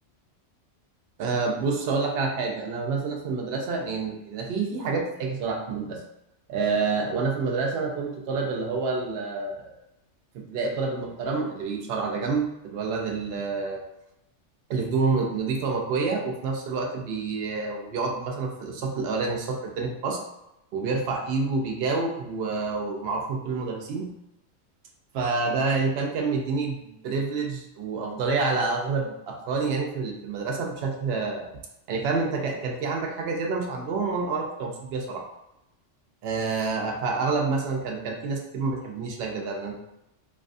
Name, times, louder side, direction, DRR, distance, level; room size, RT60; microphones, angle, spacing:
voice 1, 1.2-6.0 6.5-9.8 10.3-13.8 14.7-20.2 20.7-24.1 25.1-31.5 31.9-35.2 36.2-39.7, right 4 dB, 65° right, 1 dB, 0.8 m, -28 dB
2.7 x 2.3 x 2.5 m, 0.87 s
omnidirectional pair, 1.3 m